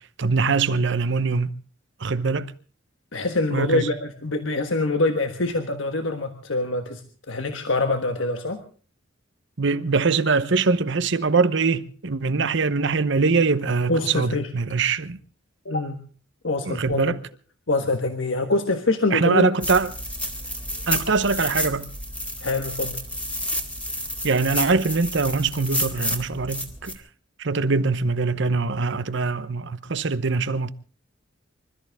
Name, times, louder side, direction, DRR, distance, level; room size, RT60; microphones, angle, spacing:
voice 1, 0.2-1.5 2.0-2.5 3.5-3.9 9.6-15.2 16.7-17.2 19.1-19.9 20.9-21.9 24.2-27.0 27.4-30.7, right 4 dB, 65° right, 0.9 m, -23 dB
voice 2, 3.1-7.0 7.3-8.6 13.9-14.5 15.6-16.0 16.4-17.1 17.7-19.5 22.4-23.0, left 2 dB, 80° left, 1.4 m, -24 dB
sound 1, 19.6-27.0, equal, 5° left, 2.2 m, -30 dB
25.5 x 13.5 x 3.6 m
head